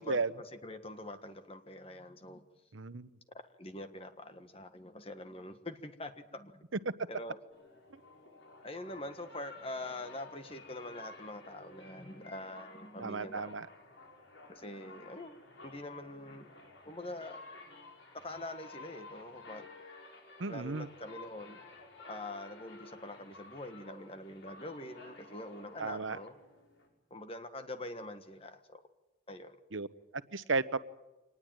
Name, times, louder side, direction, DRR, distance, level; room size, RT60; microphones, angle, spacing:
voice 1, 0.0-2.4 3.6-6.6 7.1-7.4 8.6-13.5 14.5-16.5 16.8-17.4 18.1-19.7 20.5-21.6 22.0-26.3 27.1-28.8 29.3-29.5, left 1 dB, 30° left, 8 dB, 1.5 m, -44 dB
voice 2, 2.7-3.1 13.0-13.7 20.4-20.9 25.8-26.2 29.7-29.9 30.3-30.8, right 3 dB, 75° right, 13 dB, 1.0 m, -33 dB
sound 1, 7.5-26.9, left 3 dB, 70° left, 5.7 m, -53 dB
25.5 x 20.0 x 9.1 m, 1.0 s
head